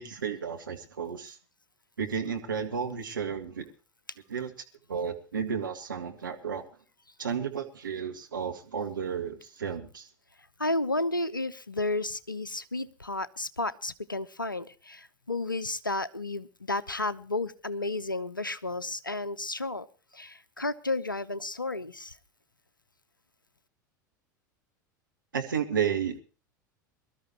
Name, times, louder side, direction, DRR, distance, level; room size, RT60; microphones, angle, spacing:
voice 1, 0.0-1.4 2.0-3.7 4.3-4.5 4.9-6.6 7.2-10.1 25.3-26.2, right 7 dB, 75° right, 4 dB, 1.8 m, -32 dB
voice 2, 10.6-19.9 20.1-22.2, left 2 dB, 90° left, 18 dB, 0.8 m, -32 dB
23.0 x 13.0 x 3.0 m, 0.33 s
figure-of-eight pair, 80°, 11 cm